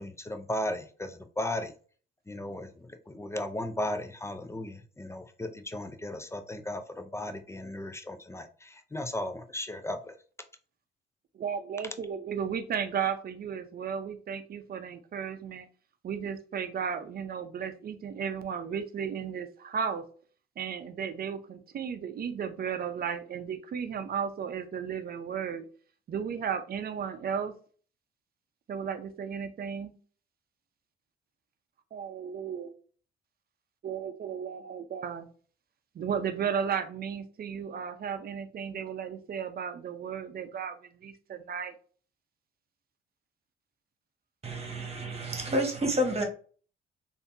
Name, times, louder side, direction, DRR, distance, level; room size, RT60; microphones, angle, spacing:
voice 1, 0.0-1.7 2.3-10.2, left 1 dB, 15° left, 0.5 m, -36 dB
voice 2, 11.3-15.7 16.0-20.1 20.6-25.7 26.1-27.5 28.7-29.9 31.9-32.7 33.8-35.3 35.9-41.7, right 7 dB, 50° right, 0.6 m, -34 dB
voice 3, 44.4-46.2, equal, 30° right, 1.2 m, -29 dB
3.6 x 2.7 x 2.6 m
cardioid pair, 90°, 20 cm